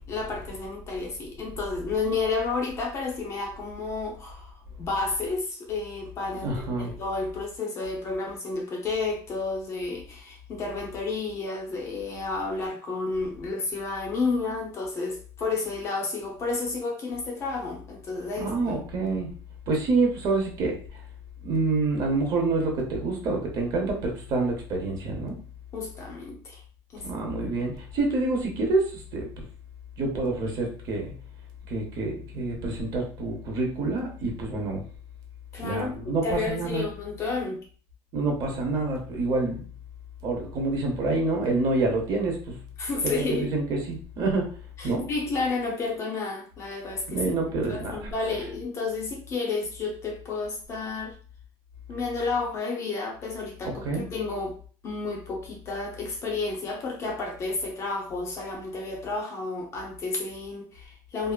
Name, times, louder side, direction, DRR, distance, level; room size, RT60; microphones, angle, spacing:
voice 1, 0.1-18.8 25.7-26.6 26.9-27.1 35.5-37.6 42.8-43.5 44.8-47.2 47.7-51.1 51.9-54.6 54.8-61.3, left 3 dB, 30° left, 1 dB, 0.6 m, -31 dB
voice 2, 6.4-6.9 18.4-19.4 19.7-21.0 21.4-25.4 27.0-29.5 30.0-31.1 31.7-34.8 35.6-36.8 38.1-39.6 40.2-42.6 43.0-44.6 44.8-45.1 47.1-48.1 53.6-54.0, right 3 dB, 40° right, 1 dB, 0.9 m, -27 dB
2.8 x 2.4 x 2.3 m, 0.41 s
cardioid pair, 160°, 9 cm